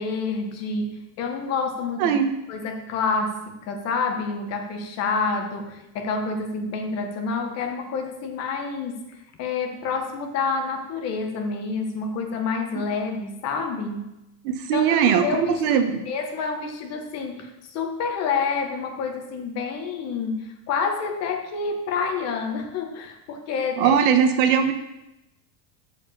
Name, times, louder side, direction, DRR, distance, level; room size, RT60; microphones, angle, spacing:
voice 1, 0.0-2.2 2.5-14.2 14.7-24.0, left 4 dB, 30° left, 4 dB, 1.2 m, -28 dB
voice 2, 14.4-16.0 23.8-24.7, right 8 dB, 60° right, 7 dB, 1.4 m, -20 dB
13.5 x 5.0 x 6.8 m, 0.94 s
cardioid pair, 175°, 48 cm